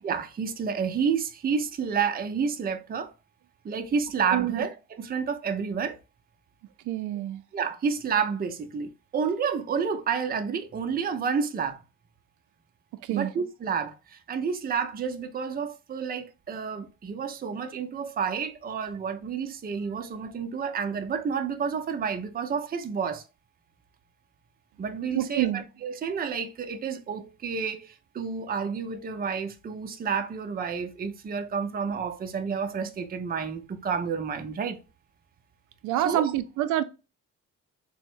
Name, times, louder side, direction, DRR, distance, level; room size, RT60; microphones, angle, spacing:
voice 1, 0.0-3.1 3.6-6.0 7.5-11.8 13.1-23.2 24.8-34.8 36.0-36.2, right 6 dB, 30° right, 0.5 m, -30 dB
voice 2, 4.3-4.6 6.9-7.4 13.0-13.3 25.1-25.6 35.8-36.8, right 13 dB, 85° right, 0.5 m, -27 dB
3.5 x 2.1 x 4.3 m
cardioid pair, 90°, 30 cm